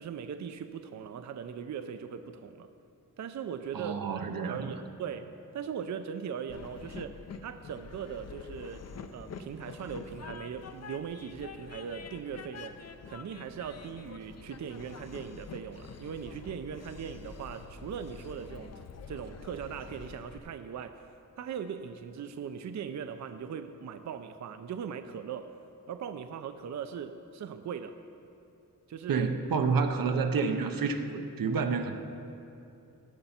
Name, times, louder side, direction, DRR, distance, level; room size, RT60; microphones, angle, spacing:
voice 1, 0.0-2.7 3.2-5.3 5.5-7.2 7.4-8.8 9.1-12.8 13.1-18.7 19.1-21.1 21.4-25.5 25.9-28.0 28.9-29.2, right 7 dB, 55° right, 8 dB, 0.5 m, -39 dB
voice 2, 3.7-4.7 29.1-31.9, right 5 dB, 90° right, 6 dB, 0.8 m, -29 dB
Train, 6.5-20.4, left 5 dB, 50° left, 0.6 m, -46 dB
17.5 x 6.9 x 4.3 m, 2.7 s
wide cardioid pair, 140°, 34 cm